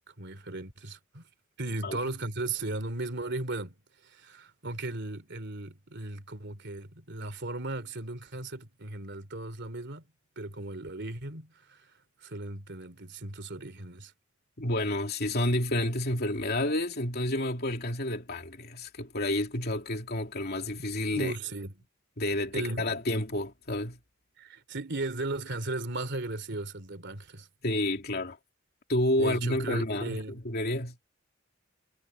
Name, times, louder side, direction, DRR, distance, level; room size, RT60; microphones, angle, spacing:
voice 1, 0.2-1.2 1.6-3.8 4.0-10.0 10.4-11.9 12.2-14.1 21.1-21.7 22.5-23.0 24.4-27.5 29.2-30.4, right 2 dB, 60° right, 3.1 m, -36 dB
voice 2, 14.6-21.3 22.2-24.0 27.6-28.4 28.9-31.0, left 1 dB, 50° left, 2.9 m, -30 dB
head